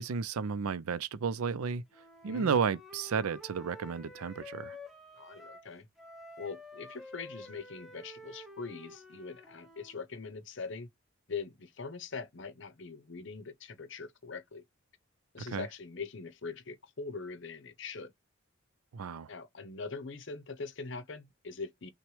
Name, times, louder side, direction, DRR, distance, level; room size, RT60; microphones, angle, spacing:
voice 1, 0.0-1.8 2.2-4.8 15.4-15.7 18.9-19.3, right 6 dB, 90° right, 0.4 m, -32 dB
Wind instrument woodwind instrument, 1.9-5.7 6.0-10.0, left 1 dB, ahead, 0.8 m, -50 dB
voice 2, 2.2-2.6 5.2-5.9 6.4-10.9 11.3-14.6 15.3-18.1 19.3-21.9, left 4 dB, 55° left, 0.7 m, -42 dB
5.9 x 2.2 x 3.2 m
head